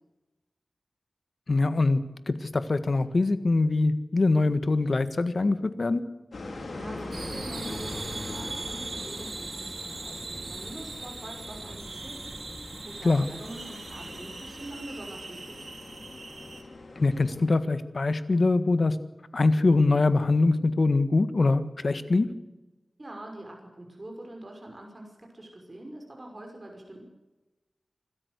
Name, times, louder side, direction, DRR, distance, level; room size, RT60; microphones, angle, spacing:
voice 1, 1.5-6.0 13.0-13.3 17.0-19.0 19.3-22.3, left 3 dB, 65° left, 12 dB, 1.6 m, -23 dB
sound 1, 6.3-17.5, left 2 dB, 85° left, 4.6 m, -42 dB
voice 2, 6.7-12.3 12.8-15.7 23.0-27.0, right 1 dB, 35° right, 1 dB, 5.9 m, -44 dB
sound 2, 7.1-16.6, right 3 dB, 65° right, 2.5 m, -40 dB
26.0 x 13.5 x 8.2 m, 1.1 s
wide cardioid pair, 70°, 0 cm